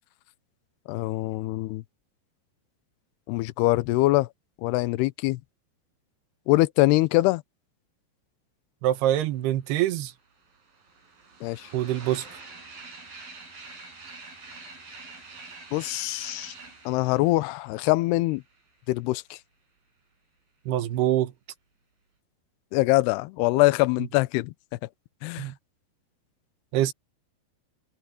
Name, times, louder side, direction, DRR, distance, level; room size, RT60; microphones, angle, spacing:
voice 1, 0.9-1.8 3.3-4.3 4.6-5.4 6.5-7.4 11.4-11.7 15.7-16.5 16.9-18.4 18.9-19.4 22.7-24.5 25.2-25.5, left 19 dB, 80° left, 2.6 m, -23 dB
voice 2, 8.8-10.1 11.7-12.3 20.7-21.3 25.4-25.5 26.7-26.9, right 13 dB, 70° right, 3.0 m, -25 dB
sound 1, 10.1-18.7, right 3 dB, 50° right, 9.0 m, -46 dB
omnidirectional pair, 5.1 m